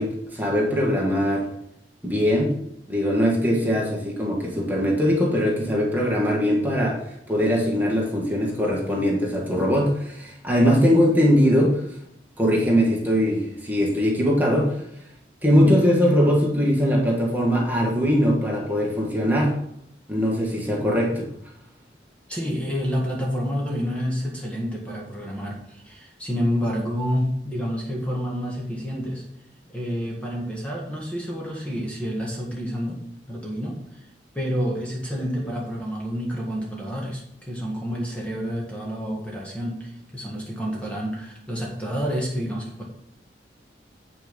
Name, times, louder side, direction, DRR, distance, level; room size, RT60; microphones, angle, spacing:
voice 1, 0.0-1.5 2.0-2.5 2.9-11.8 12.4-14.8 15.4-19.6 20.1-21.3, equal, 10° right, -3 dB, 1.8 m, -21 dB
voice 2, 22.3-29.2 29.7-33.0 33.3-34.0 34.3-42.8, equal, 5° left, -3 dB, 1.7 m, -29 dB
7.9 x 6.1 x 5.3 m, 0.74 s
head